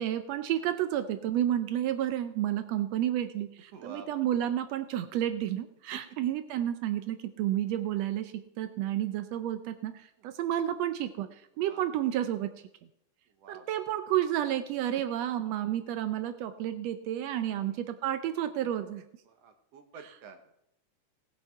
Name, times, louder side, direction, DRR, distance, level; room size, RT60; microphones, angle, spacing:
voice 1, 0.0-12.5 13.5-19.0, right 11 dB, 90° right, 9 dB, 1.4 m, -31 dB
voice 2, 3.7-4.2 5.9-6.2 10.2-10.3 11.5-11.8 13.4-13.9 17.5-17.8 19.3-20.5, right 6 dB, 65° right, 6 dB, 1.9 m, -49 dB
18.5 x 7.7 x 4.5 m, 0.79 s
omnidirectional pair, 3.7 m